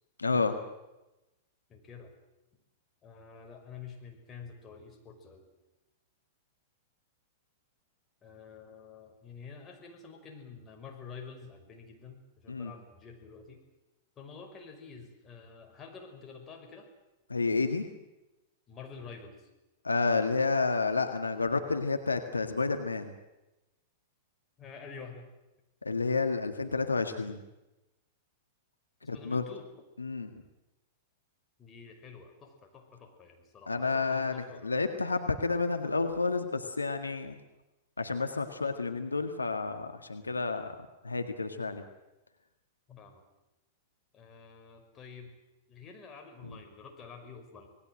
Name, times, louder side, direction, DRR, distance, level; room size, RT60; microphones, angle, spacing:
voice 1, 0.2-0.6 12.5-12.7 17.3-17.9 19.8-23.1 25.8-27.4 29.1-29.4 30.0-30.3 33.7-37.4 38.0-40.7 41.0-41.8, left 4 dB, 90° left, 7 dB, 1.7 m, -30 dB
voice 2, 1.7-2.1 3.0-5.5 8.2-13.6 14.2-16.9 18.7-19.5 24.6-25.3 29.0-29.7 31.6-34.7 42.9-43.2 44.1-45.3 45.7-47.7, left 5 dB, 25° left, 4 dB, 5.6 m, -48 dB
26.0 x 19.5 x 7.8 m, 0.99 s
figure-of-eight pair, 100°, 0 cm